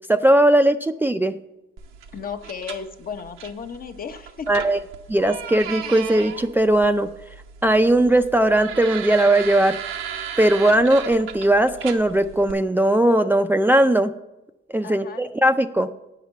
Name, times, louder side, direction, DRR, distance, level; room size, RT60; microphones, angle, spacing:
voice 1, 0.1-1.4 4.5-4.8 5.1-7.1 7.6-9.8 10.4-14.1 14.7-15.9, right 1 dB, 10° right, 7 dB, 0.4 m, -18 dB
sound 1, 1.8-12.5, right 8 dB, 85° right, 0.8 m, -36 dB
voice 2, 2.1-4.5 14.8-15.2, left 6 dB, 45° left, 7 dB, 0.8 m, -34 dB
8.6 x 5.8 x 7.1 m, 0.96 s
cardioid pair, 90°, 20 cm